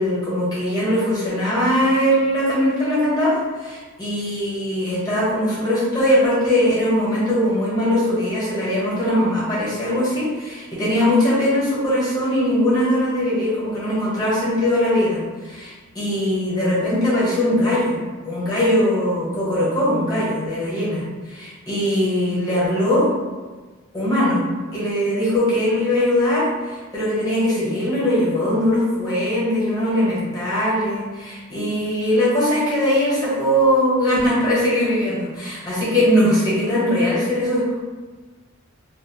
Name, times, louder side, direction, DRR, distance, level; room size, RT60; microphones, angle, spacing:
voice 1, 0.0-18.0 18.2-23.1 23.9-24.5 24.7-37.7, left 1 dB, 20° left, -9 dB, 1.0 m, -20 dB
2.5 x 2.2 x 2.8 m, 1.3 s
head